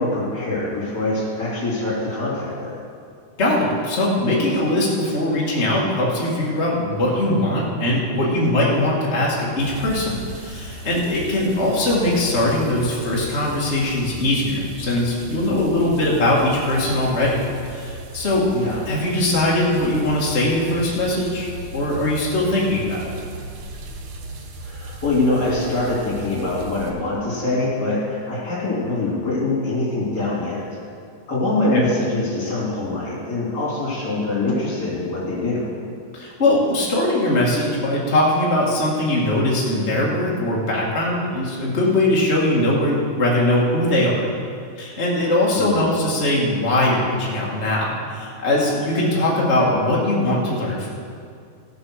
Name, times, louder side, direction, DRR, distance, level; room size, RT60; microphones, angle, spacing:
voice 1, 0.0-2.8 18.5-18.8 24.6-30.7 31.3-35.7 45.5-45.8, left 2 dB, 25° left, -6 dB, 3.7 m, -24 dB
voice 2, 3.4-18.5 18.9-21.5 21.7-23.0 31.7-31.9 36.1-44.3 44.8-50.9, left 1 dB, 90° left, -5 dB, 0.6 m, -21 dB
sound 1, 9.6-26.9, right 2 dB, 75° right, 1.6 m, -37 dB
16.0 x 6.8 x 6.4 m, 2.3 s
omnidirectional pair, 4.6 m